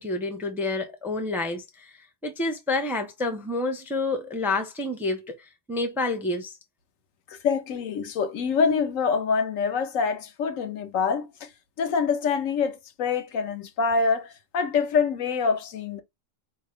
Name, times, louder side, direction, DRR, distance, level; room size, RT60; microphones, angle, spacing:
voice 1, 0.0-1.9 2.2-6.5, left 2 dB, ahead, 0.5 m, -29 dB
voice 2, 7.4-11.5 11.8-16.0, left 5 dB, 75° left, 1.1 m, -25 dB
4.4 x 2.9 x 3.3 m
omnidirectional pair, 1.4 m